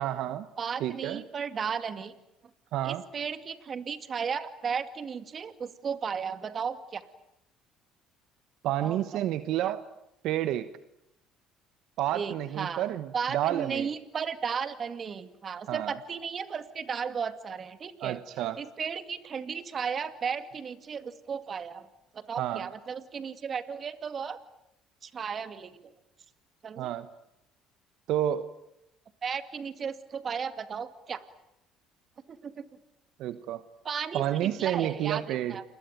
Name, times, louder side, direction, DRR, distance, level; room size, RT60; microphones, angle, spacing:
voice 1, 0.0-0.5 0.8-1.3 2.7-3.0 8.6-9.8 10.2-10.7 12.0-13.9 15.7-16.0 18.0-18.6 22.4-22.7 26.8-27.1 28.1-28.5 33.2-33.6 34.1-35.6, right 12 dB, 70° right, 12 dB, 1.1 m, -30 dB
voice 2, 0.6-2.1 2.8-7.0 8.8-9.2 9.6-9.7 12.1-12.9 13.1-18.2 18.6-21.9 22.1-24.4 25.0-25.9 26.6-26.9 29.2-31.2 32.3-32.7 33.8-35.6, right 6 dB, 40° right, 10 dB, 2.3 m, -35 dB
29.0 x 21.5 x 9.2 m, 0.85 s
supercardioid pair, 90°, 0 cm